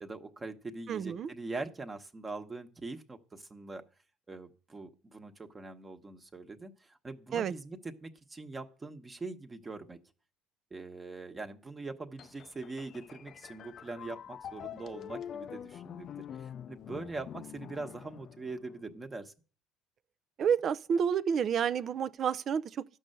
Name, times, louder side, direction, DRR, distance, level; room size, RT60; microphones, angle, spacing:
voice 1, 0.0-3.8 4.3-10.0 10.7-19.3, right 3 dB, 20° right, 1.2 m, -42 dB
voice 2, 0.9-1.3 7.3-7.5 20.4-22.8, right 7 dB, 45° right, 0.5 m, -29 dB
sound 1, 12.2-18.9, left 9 dB, 50° left, 0.4 m, -45 dB
12.5 x 5.5 x 7.8 m
supercardioid pair, 95°, 0 cm